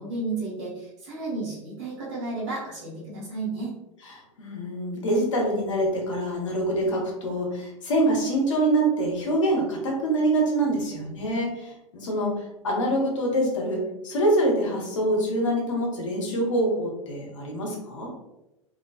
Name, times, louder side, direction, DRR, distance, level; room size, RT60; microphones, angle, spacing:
voice 1, 0.0-3.7, right 3 dB, 55° right, -6 dB, 1.1 m, -32 dB
voice 2, 4.1-18.1, right 1 dB, 65° left, -1 dB, 0.7 m, -25 dB
2.4 x 2.2 x 2.3 m, 0.91 s
figure-of-eight pair, 85°, 17 cm